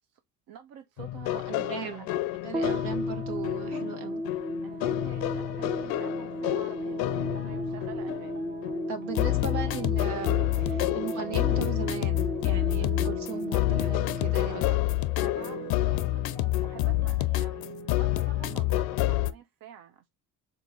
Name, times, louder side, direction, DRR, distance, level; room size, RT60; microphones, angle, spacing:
voice 1, 0.5-2.2 2.6-2.8 4.6-8.4 9.5-9.9 14.5-14.8 15.1-17.6 17.9-20.1, right 9 dB, 65° right, 0.7 m, -48 dB
sound 1, 1.0-19.3, left 17 dB, 75° left, 0.5 m, -29 dB
voice 2, 1.5-2.1 2.4-4.2 8.9-14.7 18.5-18.8, right 7 dB, 85° right, 1.3 m, -38 dB
sound 2, 2.5-15.0, equal, 10° right, 0.5 m, -35 dB
sound 3, 5.2-19.3, right 5 dB, 30° right, 1.6 m, -44 dB
3.7 x 3.0 x 3.9 m
cardioid pair, 110°, 37 cm